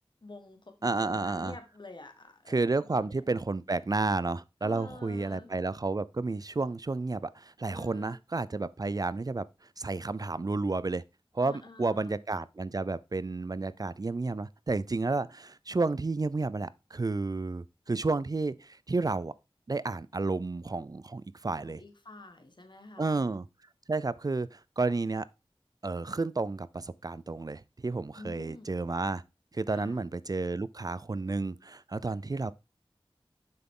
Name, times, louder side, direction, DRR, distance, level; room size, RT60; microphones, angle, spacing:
voice 1, 0.2-3.2 4.6-5.5 7.7-8.2 11.4-12.2 21.6-23.2 28.1-28.7 29.7-30.0, left 2 dB, 55° left, 1.5 m, -48 dB
voice 2, 0.8-1.5 2.5-9.5 9.8-11.0 11.3-19.3 19.7-21.8 23.0-23.5 23.9-25.3 25.8-29.2 29.5-32.5, right 3 dB, 40° right, 0.4 m, -31 dB
7.6 x 5.9 x 3.7 m
wide cardioid pair, 45°, 10 cm